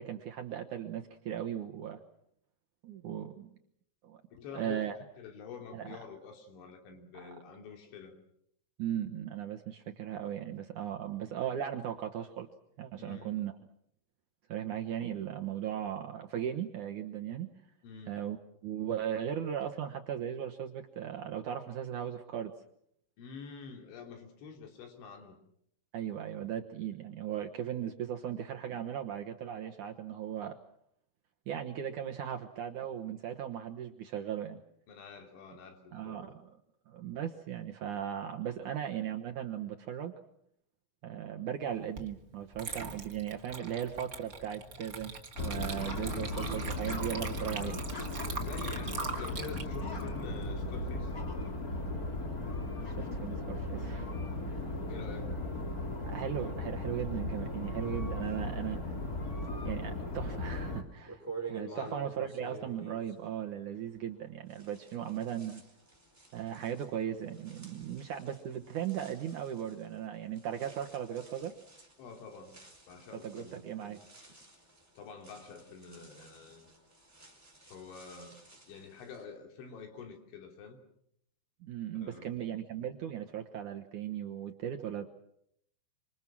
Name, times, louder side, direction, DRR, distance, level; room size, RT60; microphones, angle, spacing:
voice 1, 0.0-2.0 2.8-3.5 4.0-4.2 4.5-5.0 5.7-6.0 7.1-7.3 8.8-12.5 12.8-13.5 14.5-17.5 18.1-18.4 18.6-22.5 25.9-30.6 31.5-34.6 35.9-36.3 36.9-40.1 41.0-47.8 53.0-54.1 54.5-54.6 56.0-58.8 59.7-65.6 66.3-71.6 73.2-74.0 81.6-85.1, right 10 dB, 75° right, 4 dB, 1.8 m, -37 dB
voice 2, 4.3-4.9 5.2-8.2 13.0-13.5 17.8-18.1 23.2-25.4 34.9-36.3 48.3-51.1 54.9-55.4 61.7-62.0 72.0-72.6 72.9-73.6 75.0-76.7 77.7-78.4 78.7-80.8 82.0-82.4, left 5 dB, 90° left, 4 dB, 5.5 m, -47 dB
Water / Liquid, 42.0-42.1 42.5-51.1, right 4 dB, 40° right, 1.3 m, -42 dB
sound 1, 45.3-60.8, left 2 dB, 30° left, 1.9 m, -36 dB
sound 2, 61.0-64.2 64.5-79.2, right 3 dB, 5° right, 4.3 m, -50 dB
26.5 x 26.0 x 6.2 m, 0.71 s
omnidirectional pair, 5.2 m